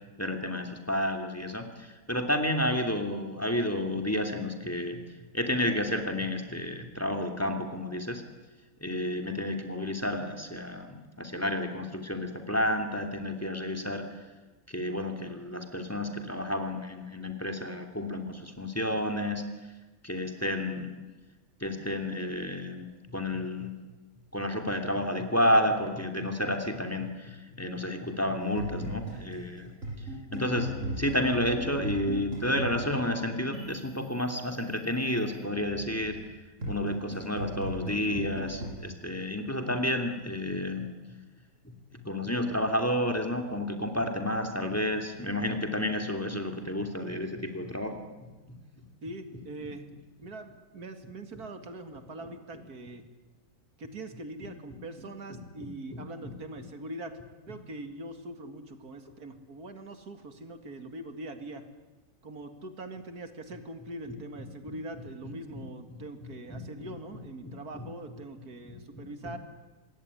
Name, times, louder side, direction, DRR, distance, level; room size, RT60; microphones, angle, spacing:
voice 1, 0.2-5.0 5.3-8.2 8.8-14.2 14.7-19.4 20.0-20.9 21.6-23.7 24.3-29.7 30.3-30.7 31.0-36.2 36.7-40.9 41.9-48.0 55.3-56.3 65.2-65.6 66.5-66.9 67.4-67.9 68.6-69.3, left 1 dB, 10° left, 5 dB, 2.8 m, -31 dB
sound 1, 28.6-36.2 36.6-38.7, equal, 55° right, 8.5 m, -37 dB
voice 2, 49.0-49.9 50.2-53.0 53.8-57.2 57.5-61.6 62.2-69.4, right 2 dB, 85° right, 7 dB, 2.6 m, -42 dB
26.5 x 20.5 x 10.0 m, 1.2 s
omnidirectional pair, 1.6 m